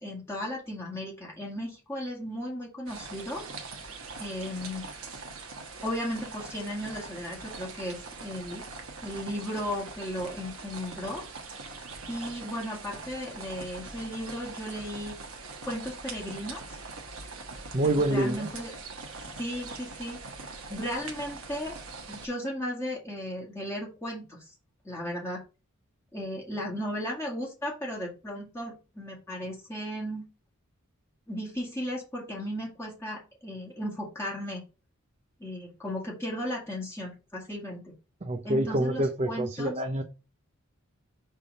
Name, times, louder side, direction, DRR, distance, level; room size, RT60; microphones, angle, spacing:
voice 1, 0.0-3.4 4.2-4.8 5.8-8.6 9.0-11.2 12.1-15.1 15.7-16.7 17.8-18.7 19.4-20.2 20.7-21.8 22.1-24.4 24.8-25.4 26.1-30.2 31.3-34.6 35.4-37.9 38.4-39.7, equal, 10° left, 1.9 m, -35 dB
sound 1, 2.9-22.3, right 3 dB, 70° right, 1.2 m, -42 dB
voice 2, 17.7-18.5 38.2-40.0, right 1 dB, 30° right, 0.6 m, -27 dB
5.6 x 3.4 x 5.4 m
head